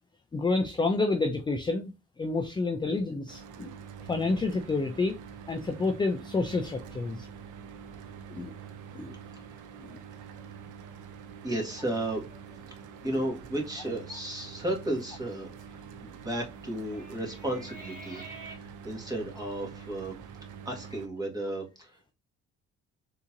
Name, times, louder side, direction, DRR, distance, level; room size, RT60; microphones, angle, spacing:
voice 1, 0.3-1.9 2.2-3.7 4.1-5.1 5.5-7.3 8.3-8.5 8.9-9.1, left 3 dB, 15° left, 0.4 m, -29 dB
Mechanical fan, 3.3-21.1, right 7 dB, 80° right, 0.6 m, -46 dB
sound 1, 9.8-11.5 11.9-12.0 12.3-12.7 13.1-13.4 14.3-18.6, right 2 dB, 25° right, 1.7 m, -51 dB
voice 2, 11.4-12.2 13.0-18.2 18.5-20.2 20.6-22.0, right 1 dB, 10° right, 1.5 m, -34 dB
3.7 x 2.9 x 2.4 m
cardioid pair, 90°, 30 cm